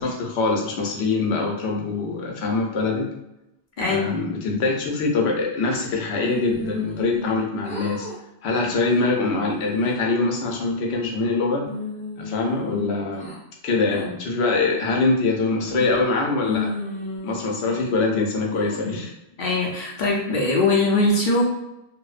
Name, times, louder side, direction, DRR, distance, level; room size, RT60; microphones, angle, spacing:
voice 1, 0.0-3.1 3.9-8.1 8.4-11.6 12.2-13.3 13.6-16.7 17.2-19.1, left 3 dB, 85° left, 0 dB, 0.9 m, -23 dB
voice 2, 3.8-4.2 19.4-21.4, left 2 dB, 60° left, -2 dB, 0.6 m, -21 dB
sound 1, 6.2-7.4 7.6-8.2 8.6-8.9 9.4-10.0 10.5-11.2 11.6-13.4 13.9-14.1 14.6-15.1 15.6-16.1 16.4-18.0 18.5-19.1, left 3 dB, 10° left, 0.3 m, -34 dB
2.6 x 2.0 x 2.3 m, 0.89 s
omnidirectional pair, 1.1 m